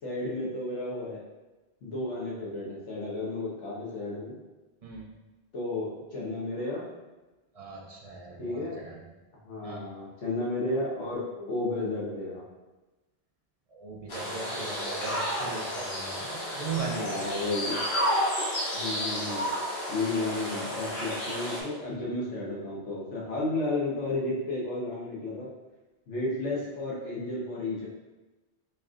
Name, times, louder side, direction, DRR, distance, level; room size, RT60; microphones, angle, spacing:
voice 1, 0.0-1.2 1.8-4.4 5.5-6.8 8.4-8.8 9.4-12.4 16.8-17.8 18.7-19.5 19.9-25.5 26.1-27.9, left 2 dB, 85° left, -5 dB, 1.4 m, -32 dB
voice 2, 7.5-9.0 9.6-9.9 13.7-17.5, right 5 dB, 50° right, -1 dB, 0.4 m, -38 dB
sound 1, 14.1-21.6, equal, 65° left, 1.2 m, -31 dB
4.5 x 3.0 x 2.4 m, 1.1 s
omnidirectional pair, 1.2 m